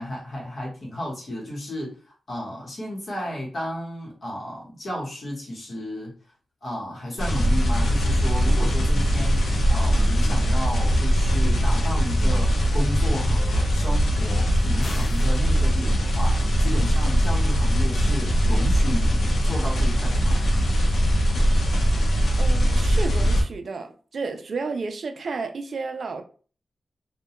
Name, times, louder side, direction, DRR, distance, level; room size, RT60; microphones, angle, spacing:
voice 1, 0.0-6.1 6.6-20.4, equal, 50° left, -4 dB, 1.0 m, -33 dB
sound 1, 7.2-23.4, equal, 70° left, 0.7 m, -21 dB
sound 2, 14.8-15.4, left 2 dB, 25° left, 0.3 m, -40 dB
voice 2, 22.4-26.2, right 4 dB, 55° right, 6 dB, 0.3 m, -32 dB
2.2 x 2.1 x 2.8 m, 0.39 s
wide cardioid pair, 150°, 0 cm